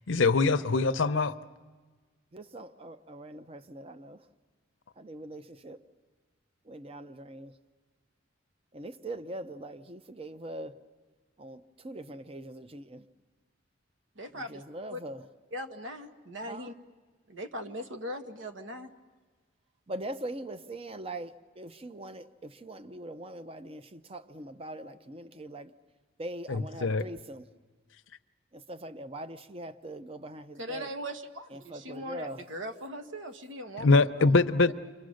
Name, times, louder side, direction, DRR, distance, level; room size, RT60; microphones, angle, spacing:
voice 1, 0.1-1.3 26.5-27.0 33.8-34.7, left 3 dB, 80° left, 0.7 m, -23 dB
voice 2, 2.3-4.2 5.0-5.8 6.7-7.5 8.7-10.8 11.4-13.1 14.3-15.2 16.5-16.7 19.9-25.7 26.2-27.5 28.5-30.9 31.5-32.4, right 1 dB, 30° right, 0.7 m, -42 dB
voice 3, 14.2-14.6 14.9-15.0 15.5-16.7 17.3-18.9 30.6-33.9 34.2-34.4, equal, 75° right, 1.3 m, -39 dB
29.5 x 24.5 x 6.4 m
head